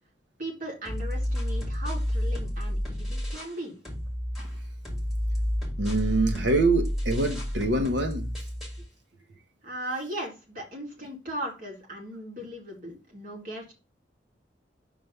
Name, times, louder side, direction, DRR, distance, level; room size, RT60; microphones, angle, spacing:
voice 1, 0.4-3.8 9.6-13.7, right 1 dB, 50° right, 2.1 m, -37 dB
sound 1, 0.9-3.6 3.9-8.9, equal, ahead, 1.7 m, -30 dB
voice 2, 5.8-8.3, right 2 dB, 85° right, 1.1 m, -25 dB
5.4 x 3.4 x 5.3 m
head